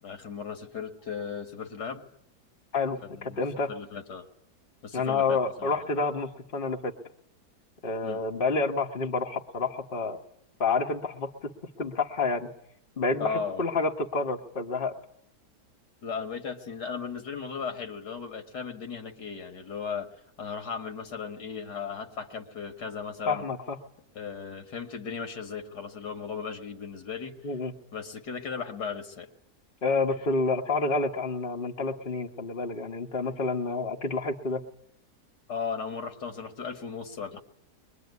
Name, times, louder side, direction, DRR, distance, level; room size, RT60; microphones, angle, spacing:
voice 1, 0.0-2.0 3.0-3.4 3.7-4.2 4.8-5.9 8.0-8.2 13.2-13.6 16.0-20.1 20.4-23.4 24.2-27.3 27.9-29.3 35.5-37.4, left 6 dB, 75° left, 5 dB, 2.5 m, -36 dB
voice 2, 2.7-3.7 4.9-6.9 7.8-10.2 10.6-11.5 11.8-12.5 13.0-14.9 23.3-23.8 27.4-27.7 29.8-34.6, left 3 dB, 35° left, 3 dB, 1.6 m, -29 dB
23.0 x 21.5 x 9.6 m, 0.71 s
omnidirectional pair, 1.8 m